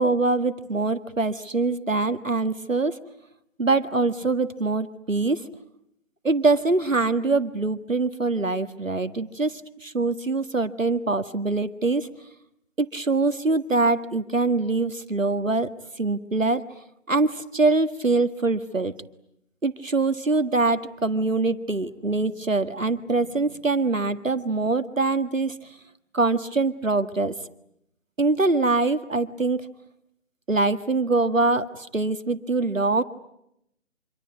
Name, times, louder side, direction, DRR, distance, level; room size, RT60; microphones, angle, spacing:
voice 1, 0.0-3.0 3.6-5.4 6.2-12.1 12.8-15.7 16.0-16.6 17.1-18.9 19.6-25.6 26.1-27.3 28.2-29.7 30.5-33.0, right 3 dB, 85° right, 10 dB, 1.8 m, -23 dB
26.0 x 25.0 x 9.3 m, 0.78 s
figure-of-eight pair, 150°, 38 cm